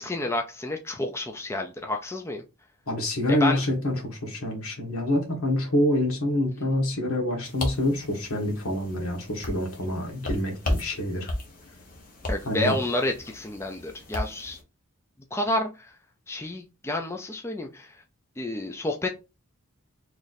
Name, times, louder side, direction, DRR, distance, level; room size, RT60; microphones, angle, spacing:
voice 1, 0.0-2.4 3.4-3.6 12.3-14.6 15.3-15.9 16.3-18.0 18.4-19.1, left 2 dB, 10° left, 0.3 m, -30 dB
voice 2, 2.9-11.3 12.4-12.8, left 1 dB, 75° left, 1.3 m, -26 dB
sound 1, 7.4-14.6, left 1 dB, 40° left, 0.8 m, -35 dB
3.1 x 2.6 x 4.0 m
head